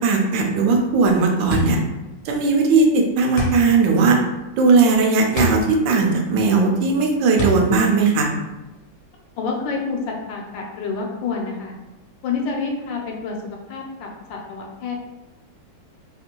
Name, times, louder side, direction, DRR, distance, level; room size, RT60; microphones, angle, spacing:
voice 1, 0.0-1.8 2.2-4.2 4.6-8.3, right 4 dB, 80° right, 1 dB, 1.3 m, -17 dB
sound 1, 1.5-9.0, left 2 dB, 55° left, 1.0 m, -28 dB
voice 2, 9.4-11.7 12.2-13.4 13.7-15.0, left 4 dB, 80° left, 0 dB, 1.3 m, -28 dB
3.5 x 2.5 x 2.8 m, 1.0 s
omnidirectional pair, 2.0 m